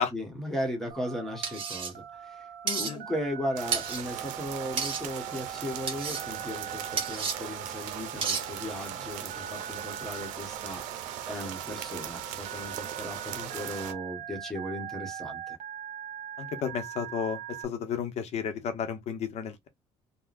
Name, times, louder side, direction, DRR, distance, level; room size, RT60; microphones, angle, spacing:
voice 1, 0.0-2.4 2.7-10.8 11.2-15.6, equal, 5° left, 1.3 m, -36 dB
Telephone, 0.9-17.7, right 9 dB, 60° right, 1.2 m, -42 dB
sound 1, 1.4-1.9 2.7-2.9 3.7-4.0 4.8-5.0 5.9-6.2 7.0-7.4 8.2-8.4, right 6 dB, 45° right, 1.2 m, -31 dB
voice 2, 2.6-3.0 16.4-19.7, left 7 dB, 55° left, 0.9 m, -32 dB
sound 2, 3.6-13.9, right 10 dB, 85° right, 0.6 m, -39 dB
3.6 x 2.3 x 2.5 m
cardioid pair, 115°, 13 cm